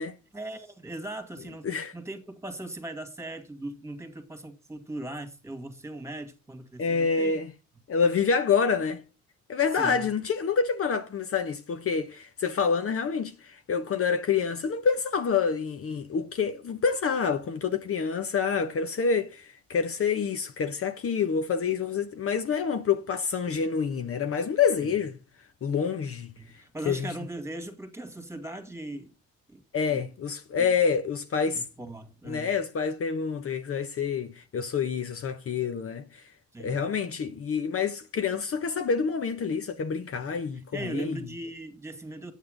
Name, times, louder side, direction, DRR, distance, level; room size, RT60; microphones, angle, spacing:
voice 1, 0.3-7.4 9.7-10.1 24.8-24.9 26.4-29.1 29.5-29.6 29.9-30.1 30.6-30.7 31.5-32.6 36.5-36.9 40.7-42.3, right 1 dB, 10° right, 2.1 m, -39 dB
voice 2, 6.8-7.5 7.9-9.0 9.5-25.2 25.6-26.3 26.9-27.1 29.7-31.6 32.3-36.2 36.6-41.2, left 6 dB, 50° left, 1.0 m, -27 dB
8.5 x 8.3 x 5.2 m
cardioid pair, 90°, 30 cm